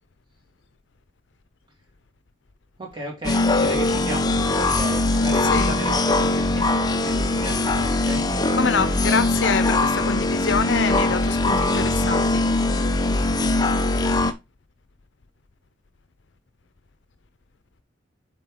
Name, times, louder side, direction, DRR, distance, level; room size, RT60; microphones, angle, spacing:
voice 1, 2.8-8.3, right 1 dB, 25° right, 2.4 m, -34 dB
sound 1, 3.2-14.3, left 2 dB, 20° left, 0.6 m, -21 dB
voice 2, 8.5-12.4, left 5 dB, 65° left, 0.7 m, -26 dB
7.3 x 4.5 x 3.7 m
head